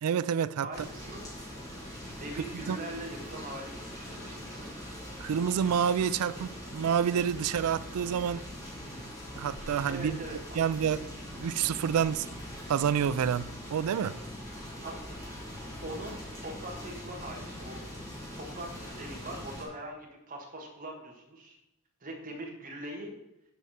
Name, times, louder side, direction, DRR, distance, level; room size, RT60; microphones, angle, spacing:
voice 1, 0.0-0.9 2.5-2.8 5.2-8.4 9.3-10.2 10.5-11.0 11.4-12.3 12.7-14.2, right 8 dB, 75° right, 0.3 m, -28 dB
voice 2, 0.6-1.2 2.2-4.7 9.9-10.4 14.8-15.0 15.2-15.4 15.8-17.8 18.3-21.6 22.0-23.1, right 1 dB, 40° right, 1.6 m, -42 dB
sound 1, 0.7-19.6, equal, 15° left, 2.6 m, -42 dB
7.1 x 4.9 x 5.8 m
head